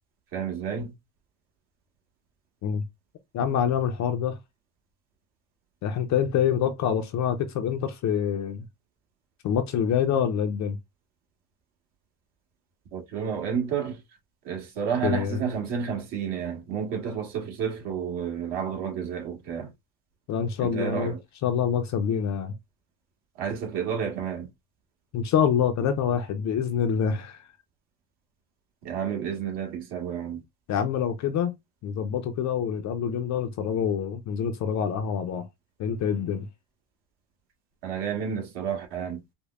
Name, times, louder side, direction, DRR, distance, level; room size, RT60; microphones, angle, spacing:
voice 1, 0.3-0.9 12.9-14.0 14.4-19.7 20.6-21.2 23.4-24.5 28.8-30.4 37.8-39.2, right 7 dB, 60° right, 1.6 m, -30 dB
voice 2, 3.3-4.4 5.8-8.6 9.4-10.8 15.0-15.4 20.3-21.1 21.4-22.5 25.1-27.4 30.7-31.5 31.8-35.5 35.8-36.5, left 8 dB, 40° left, 0.4 m, -26 dB
5.2 x 2.1 x 2.3 m
cardioid pair, 130°, 49 cm